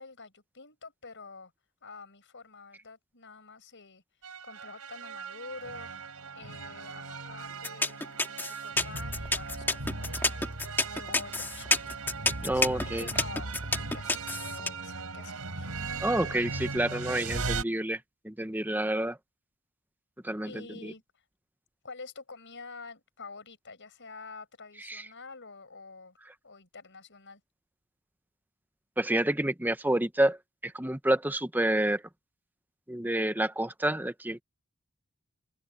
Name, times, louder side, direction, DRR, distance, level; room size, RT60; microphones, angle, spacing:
voice 1, 0.0-1.5 1.8-4.0 4.4-5.9 6.3-12.0 12.5-15.8 20.4-21.2 21.8-26.2 26.4-27.4, left 4 dB, 55° left, 6.4 m, -47 dB
sound 1, 4.2-17.6, right 3 dB, 85° right, 3.9 m, -38 dB
sound 2, 7.6-14.7, left 2 dB, 10° left, 1.8 m, -28 dB
voice 2, 12.4-13.1 16.0-18.0 18.2-19.2 20.2-20.9 24.9-25.0 29.0-30.4 30.6-32.0 32.9-34.4, right 1 dB, 10° right, 0.9 m, -28 dB
open air
head